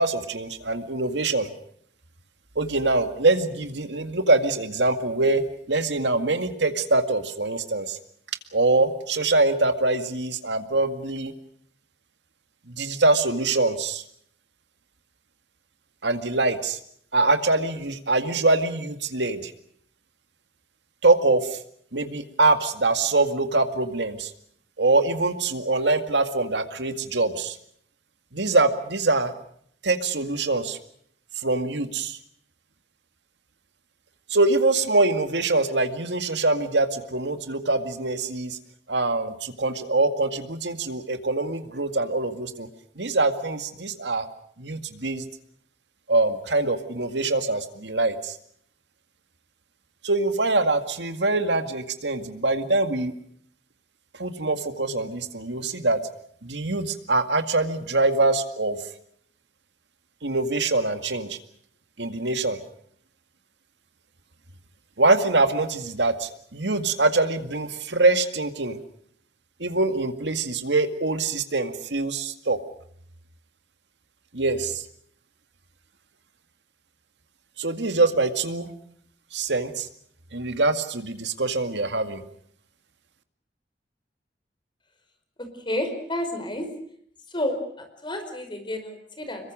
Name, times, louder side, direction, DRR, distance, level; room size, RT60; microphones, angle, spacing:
voice 1, 0.0-1.5 2.6-5.4 5.7-8.0 8.5-11.3 12.7-14.0 16.0-16.8 17.1-19.5 21.0-21.6 21.9-24.3 24.8-27.6 28.3-29.3 29.8-30.8 31.4-32.2 34.3-38.6 38.9-42.7 43.0-44.3 44.6-45.3 46.1-48.4 50.0-53.1 54.2-56.0 56.4-58.8 60.2-61.4 62.0-62.6 65.0-68.8 69.6-72.6 74.3-74.8 77.6-78.7 79.3-79.9 80.3-82.2, right 2 dB, 80° right, 8 dB, 2.1 m, -24 dB
voice 2, 85.4-86.7 87.3-89.5, left 1 dB, 30° left, 7 dB, 4.9 m, -30 dB
26.5 x 22.5 x 6.3 m, 0.65 s
head